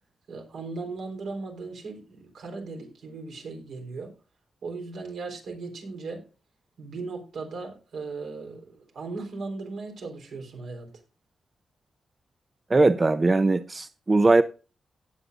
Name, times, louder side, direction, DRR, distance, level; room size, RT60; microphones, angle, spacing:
voice 1, 0.3-4.1 4.6-6.2 6.8-10.9, right 3 dB, 80° right, 3.7 m, -37 dB
voice 2, 12.7-14.4, right 3 dB, 25° right, 0.5 m, -20 dB
17.5 x 7.8 x 2.5 m
wide cardioid pair, 110°, 0 cm